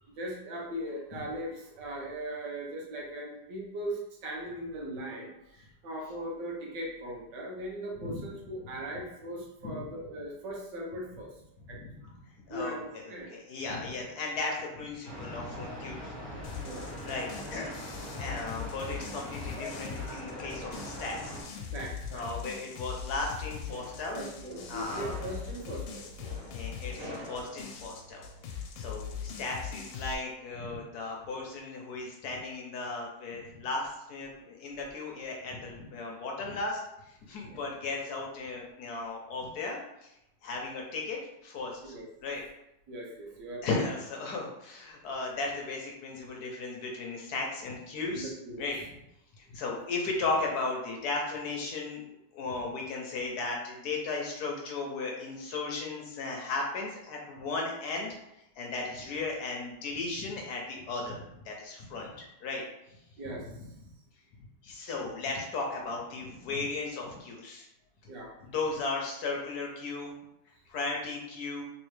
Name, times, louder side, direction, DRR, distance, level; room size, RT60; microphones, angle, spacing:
voice 1, 0.2-11.3 11.7-11.8 12.0-12.1 12.5-13.4 16.6-17.0 21.7-22.2 24.1-26.1 37.5-37.6 41.8-42.1 42.9-43.7 48.1-48.6 63.2-63.5 68.0-68.3, right 1 dB, 75° right, -2 dB, 1.5 m, -39 dB
voice 2, 12.5-16.1 17.0-21.3 22.1-24.2 24.7-25.2 26.5-40.1 40.4-41.9 42.2-42.4 43.6-48.3 48.6-48.9 49.4-52.0 52.3-58.1 58.6-62.6 62.9-63.0 63.3-63.4 64.6-67.7 68.4-70.1 70.5-71.6, left 3 dB, 65° left, 0 dB, 1.1 m, -36 dB
sound 1, 15.0-21.4, equal, 25° right, 1.5 m, -41 dB
sound 2, 16.4-30.1, left 7 dB, 90° left, 1.3 m, -41 dB
sound 3, 23.3-28.4, equal, 50° right, 1.3 m, -47 dB
3.4 x 3.0 x 3.1 m, 0.85 s
omnidirectional pair, 2.0 m